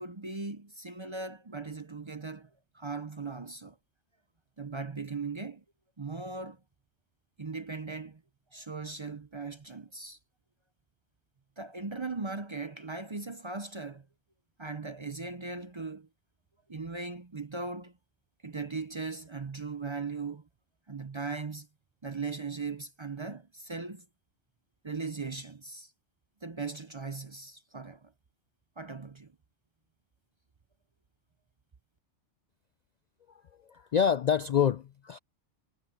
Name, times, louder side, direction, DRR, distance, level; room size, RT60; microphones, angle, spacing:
voice 1, 0.0-2.5 2.7-3.8 4.6-5.6 6.0-6.6 7.4-8.2 8.5-10.2 11.6-14.1 14.6-16.1 16.7-17.9 18.4-20.5 20.9-21.7 22.0-24.0 24.8-25.9 26.4-28.1 28.8-29.4, right 4 dB, 30° right, 0.6 m, -38 dB
voice 2, 33.7-35.2, left 8 dB, 55° left, 0.5 m, -26 dB
omnidirectional pair, 1.2 m